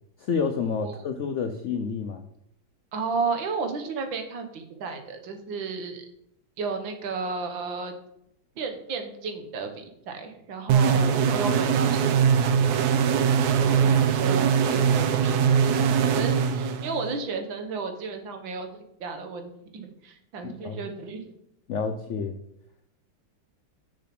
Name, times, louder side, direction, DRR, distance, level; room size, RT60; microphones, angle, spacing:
voice 1, 0.2-2.2 20.4-20.8 21.7-22.4, left 5 dB, 85° left, 7 dB, 0.6 m, -29 dB
voice 2, 2.9-6.1 6.6-7.9 8.6-12.2 12.7-12.9 13.6-18.7 19.0-21.2, right 4 dB, 90° right, 6 dB, 2.0 m, -33 dB
sound 1, 10.7-17.2, right 7 dB, 65° right, 1.1 m, -22 dB
6.9 x 6.6 x 6.0 m, 0.77 s
omnidirectional pair, 2.0 m